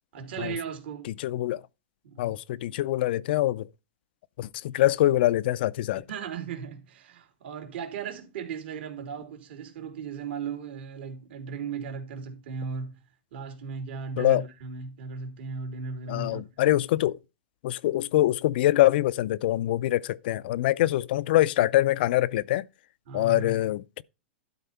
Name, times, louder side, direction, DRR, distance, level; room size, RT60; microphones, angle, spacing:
voice 1, 0.1-1.1 2.0-2.3 6.1-13.0 13.3-16.7 23.1-23.5, right 6 dB, 65° right, 3.0 m, -36 dB
voice 2, 1.2-1.6 2.2-3.7 4.4-6.0 14.2-14.4 16.1-17.2 17.6-22.6 23.1-24.0, left 15 dB, 60° left, 0.4 m, -24 dB
12.0 x 4.2 x 5.6 m
hypercardioid pair, 135°, 6 cm